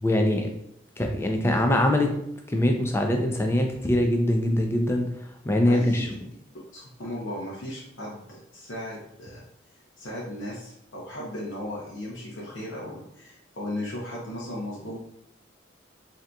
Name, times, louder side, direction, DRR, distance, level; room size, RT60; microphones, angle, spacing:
voice 1, 0.0-0.5 1.0-2.1 2.5-5.1 5.4-6.1, left 1 dB, 15° left, 3 dB, 0.3 m, -23 dB
voice 2, 5.7-6.1 6.7-9.4 10.0-15.0, left 1 dB, 80° left, -5 dB, 0.7 m, -36 dB
3.7 x 2.8 x 2.2 m, 0.73 s
head